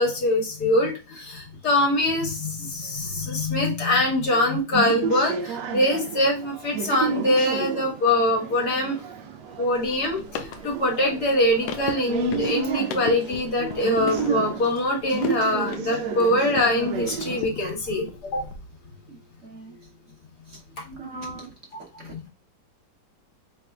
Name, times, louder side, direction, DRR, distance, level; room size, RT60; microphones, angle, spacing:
voice 1, 0.0-9.0 9.6-18.5 19.7-19.8 20.8-21.0 21.9-22.3, left 1 dB, 60° left, -1 dB, 2.0 m, -23 dB
sound 1, 4.7-17.4, right 7 dB, 75° right, 1.2 m, -32 dB
sound 2, 9.7-16.8 17.1-18.6, left 7 dB, 90° left, 1.3 m, -37 dB
voice 2, 19.4-19.8 20.5-20.6 21.0-21.5 22.0-22.3, right 2 dB, 50° right, -2 dB, 1.2 m, -40 dB
4.4 x 3.9 x 2.3 m, 0.31 s
omnidirectional pair, 1.9 m